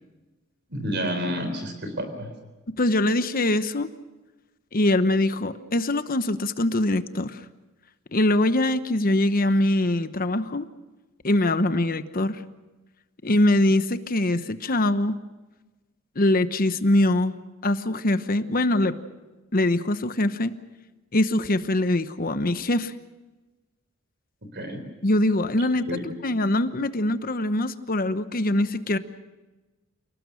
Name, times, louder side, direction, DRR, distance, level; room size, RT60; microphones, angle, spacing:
voice 1, 0.7-2.3 24.5-24.8 25.9-26.0, equal, 55° right, 7 dB, 3.9 m, -29 dB
voice 2, 2.8-3.9 4.7-7.4 8.1-10.7 11.2-12.4 13.2-15.1 16.2-17.4 17.6-18.9 19.5-20.5 21.1-22.9 25.0-25.9 26.2-29.0, left 1 dB, 45° left, 11 dB, 1.0 m, -23 dB
29.0 x 19.0 x 6.4 m, 1.2 s
head